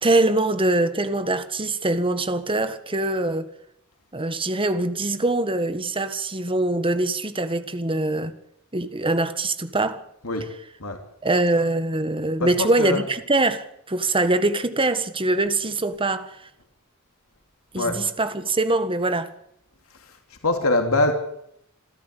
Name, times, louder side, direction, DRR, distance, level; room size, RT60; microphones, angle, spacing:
voice 1, 0.0-3.5 4.1-8.3 8.7-10.0 11.2-16.4 17.7-19.3, right 2 dB, 25° right, 1.7 m, -23 dB
voice 2, 12.4-13.0 17.8-18.0 19.9-21.1, left 2 dB, 90° left, 3.1 m, -24 dB
27.0 x 13.5 x 8.4 m
head